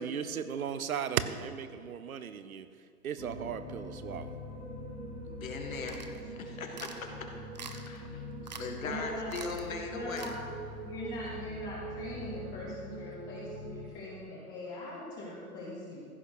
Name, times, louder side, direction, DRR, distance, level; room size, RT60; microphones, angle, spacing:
voice 1, 0.0-2.7 3.0-4.4, right 7 dB, 65° right, 12 dB, 0.9 m, -36 dB
sound 1, 3.2-13.9, right 1 dB, 80° right, 2.5 m, -43 dB
voice 2, 5.3-7.1 7.7-8.2 8.6-10.3, left 4 dB, 60° left, 3 dB, 2.0 m, -40 dB
sound 2, 5.9-6.2 6.7-7.0 7.6-8.0 8.5-8.7 8.9-9.0 9.3-9.7 10.1-10.4, right 6 dB, 30° right, 0.4 m, -45 dB
voice 3, 8.8-9.3 9.9-10.3 10.8-16.0, left 1 dB, 25° left, -8 dB, 2.3 m, -41 dB
15.0 x 5.8 x 6.3 m, 2.3 s
hypercardioid pair, 140°, 46 cm